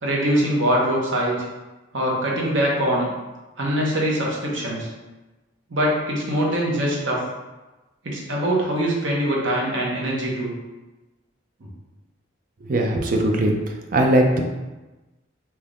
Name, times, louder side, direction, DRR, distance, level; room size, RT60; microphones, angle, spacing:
voice 1, 0.0-1.4 1.9-3.1 3.6-4.9 5.7-7.2 8.0-10.5, right 1 dB, 70° right, -3 dB, 0.8 m, -23 dB
voice 2, 12.7-13.6 13.9-14.4, right 1 dB, 45° right, 2 dB, 0.4 m, -19 dB
3.4 x 2.8 x 2.5 m, 1.1 s
head